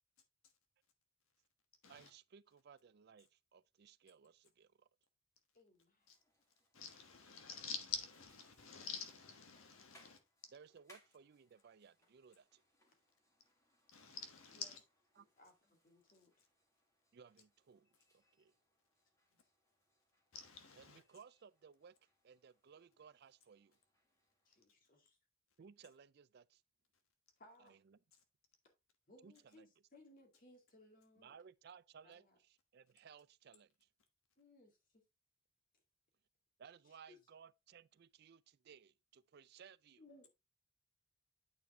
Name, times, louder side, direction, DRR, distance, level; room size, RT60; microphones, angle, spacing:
voice 1, 1.9-4.9 10.5-12.6 15.1-15.3 17.1-18.5 20.8-21.9 22.2-23.8 25.6-26.6 27.6-28.0 29.2-29.7 31.2-33.9 36.6-40.0, right 6 dB, 50° right, 0.3 m, -61 dB
voice 2, 5.5-6.1 14.5-14.7 15.2-16.4 24.5-25.2 27.4-27.8 29.1-29.7 29.9-31.4 32.0-32.4 34.4-35.0 37.1-37.2 40.0-40.3, left 1 dB, 40° left, 2.2 m, -64 dB
sound 1, 6.0-24.6, left 1 dB, 15° left, 1.9 m, -74 dB
voice 3, 6.7-10.2 13.9-14.8 20.3-21.0, left 6 dB, 75° left, 1.3 m, -48 dB
8.7 x 4.8 x 3.6 m
head